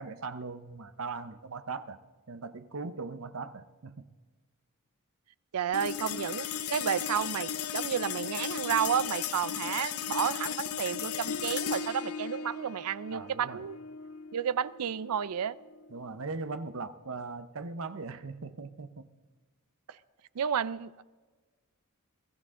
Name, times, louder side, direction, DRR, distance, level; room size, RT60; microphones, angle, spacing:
voice 1, 0.0-2.0 2.3-4.1 13.1-13.6 15.9-19.1, right 4 dB, 65° right, 11 dB, 0.8 m, -39 dB
voice 2, 5.5-13.8 14.3-15.6 20.4-21.0, right 8 dB, 90° right, 19 dB, 0.5 m, -31 dB
sound 1, 5.7-16.3, left 8 dB, 75° left, 0.7 m, -36 dB
22.0 x 14.0 x 3.7 m, 1.3 s
head